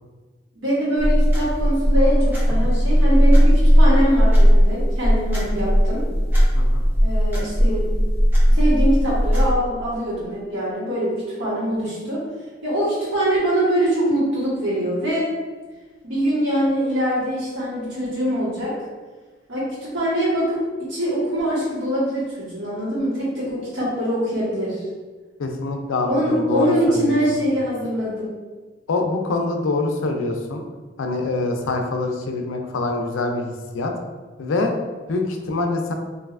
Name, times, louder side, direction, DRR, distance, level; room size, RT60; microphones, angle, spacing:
voice 1, 0.5-6.0 7.0-7.9 8.5-12.2 12.6-15.3 16.0-18.7 19.5-20.6 20.9-24.8 26.1-28.3, equal, 85° right, -8 dB, 1.4 m, -23 dB
sound 1, 1.0-9.5, equal, 10° right, 0.5 m, -17 dB
voice 2, 25.4-27.2 28.9-30.6 31.0-33.9 34.4-34.7 35.1-35.9, left 3 dB, 90° left, 4 dB, 0.4 m, -25 dB
3.1 x 2.6 x 2.4 m, 1.3 s
head